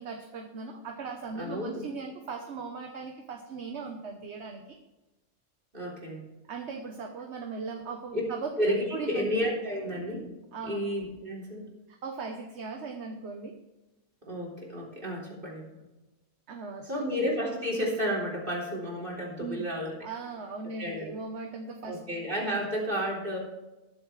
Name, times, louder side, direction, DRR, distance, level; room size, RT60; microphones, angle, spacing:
voice 1, 0.0-4.8 6.5-8.5 8.9-9.3 10.5-10.8 11.9-13.5 16.5-17.0 19.4-19.7 20.0-22.0, right 4 dB, 60° right, 3 dB, 1.3 m, -38 dB
voice 2, 1.4-1.8 5.7-6.2 8.1-8.2 8.6-10.2 10.7-11.7 14.2-15.7 16.9-20.1 20.8-21.1 21.8-23.4, equal, 40° right, -3 dB, 3.8 m, -31 dB
20.5 x 7.6 x 3.3 m, 1.1 s
omnidirectional pair, 1.3 m